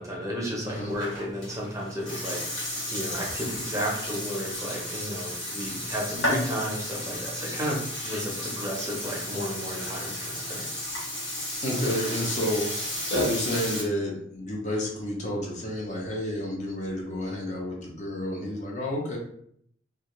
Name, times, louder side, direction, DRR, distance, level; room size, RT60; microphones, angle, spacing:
voice 1, 0.0-10.6, equal, 15° right, -3 dB, 0.6 m, -33 dB
Burping eructation, 0.7-13.8, left 1 dB, 75° left, 1.2 m, -33 dB
voice 2, 11.6-12.7 13.1-19.2, left 1 dB, 40° left, -2 dB, 0.6 m, -30 dB
2.4 x 2.3 x 2.9 m, 0.66 s
head